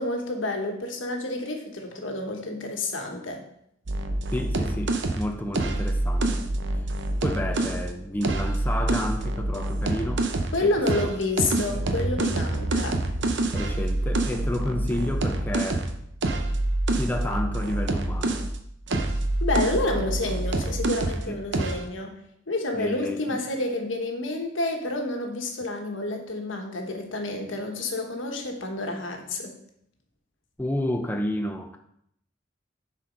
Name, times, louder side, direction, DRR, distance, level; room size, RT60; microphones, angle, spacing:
voice 1, 0.0-3.4 10.5-13.0 19.4-22.2 22.5-29.5, left 2 dB, 85° left, 3 dB, 1.3 m, -29 dB
sound 1, 3.9-7.8 8.2-10.6 10.9-18.6 18.9-21.3 21.5-21.9, right 2 dB, 65° right, 0.7 m, -26 dB
voice 2, 4.3-6.4 7.2-10.3 10.6-11.1 11.5-11.9 13.5-15.9 17.0-18.4 21.3-21.4 22.7-23.4 30.6-31.8, left 1 dB, 10° left, 3 dB, 0.6 m, -31 dB
7.1 x 4.4 x 5.2 m, 0.72 s
head